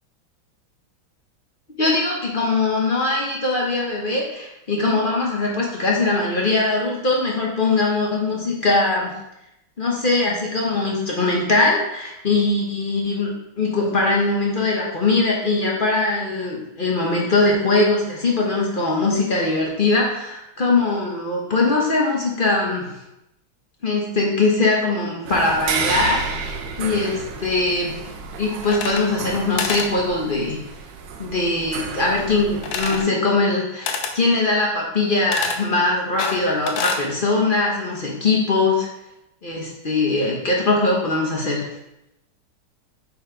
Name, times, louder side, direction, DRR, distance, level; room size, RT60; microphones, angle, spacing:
voice 1, 1.8-9.1 9.8-22.9 23.8-28.0 28.4-30.6 31.2-38.9 39.4-41.7, left 3 dB, 45° left, -2 dB, 0.7 m, -21 dB
sound 1, 25.3-33.0, right 5 dB, 75° right, 0.9 m, -31 dB
sound 2, 28.6-29.3 29.6-29.9 32.6-33.1 33.9-34.2 35.3-35.6 36.2-37.1, left 6 dB, 75° left, 1.4 m, -27 dB
5.7 x 4.3 x 4.4 m, 0.86 s
omnidirectional pair, 2.3 m